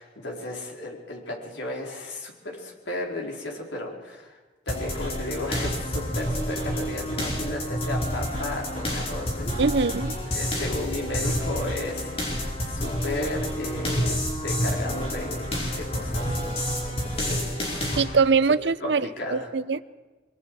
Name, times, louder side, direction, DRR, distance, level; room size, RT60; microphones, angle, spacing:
voice 1, 0.0-4.4 4.7-9.6 10.3-18.2 18.8-19.5, left 1 dB, 85° left, 4.5 m, -34 dB
sound 1, 4.7-18.0, equal, 35° left, 4.9 m, -29 dB
voice 2, 9.6-10.2 18.0-19.8, right 4 dB, 75° right, 0.6 m, -23 dB
23.0 x 23.0 x 4.9 m
head